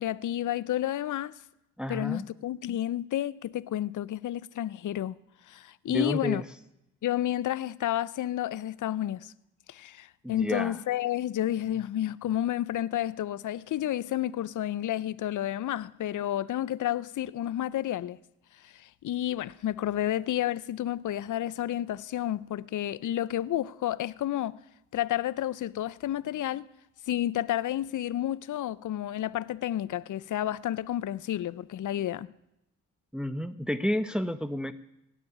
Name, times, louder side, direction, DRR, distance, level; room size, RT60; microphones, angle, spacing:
voice 1, 0.0-1.4 1.9-5.2 5.5-6.4 7.0-9.3 9.7-18.2 18.6-24.6 24.9-26.7 27.1-32.3, left 12 dB, 65° left, 0.6 m, -31 dB
voice 2, 1.8-2.3 5.9-6.4 10.2-10.8 33.1-34.7, equal, ahead, 0.9 m, -30 dB
16.5 x 7.5 x 9.8 m
supercardioid pair, 50°, 33 cm